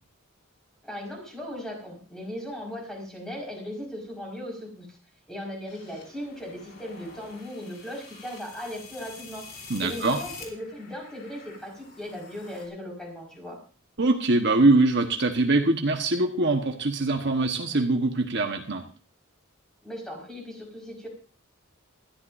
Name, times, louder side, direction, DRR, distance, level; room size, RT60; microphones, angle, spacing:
voice 1, 0.8-5.0 5.3-13.6 19.8-21.1, left 1 dB, 5° left, -1 dB, 5.1 m, -38 dB
sound 1, 5.7-12.6, left 4 dB, 50° left, 3.7 m, -46 dB
voice 2, 9.7-10.2 14.0-18.8, right 2 dB, 55° right, 4 dB, 1.3 m, -23 dB
20.0 x 13.0 x 2.7 m, 0.38 s
head